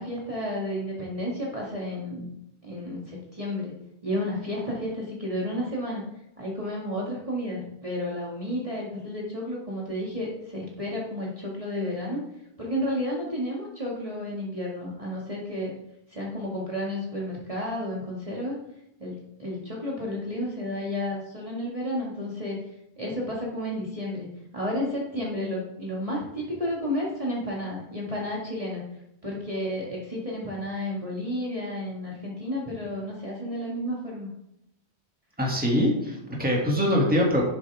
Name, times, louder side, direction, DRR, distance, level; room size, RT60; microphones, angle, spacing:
voice 1, 0.0-2.3 2.6-3.7 4.0-6.0 6.4-12.2 12.6-15.7 16.1-18.6 19.0-22.6 23.0-24.3 24.5-28.8 29.2-34.3, left 1 dB, 30° right, -4 dB, 2.3 m, -31 dB
voice 2, 35.4-37.4, equal, 10° right, -2 dB, 2.4 m, -23 dB
12.0 x 7.7 x 3.6 m, 0.81 s
omnidirectional pair, 1.1 m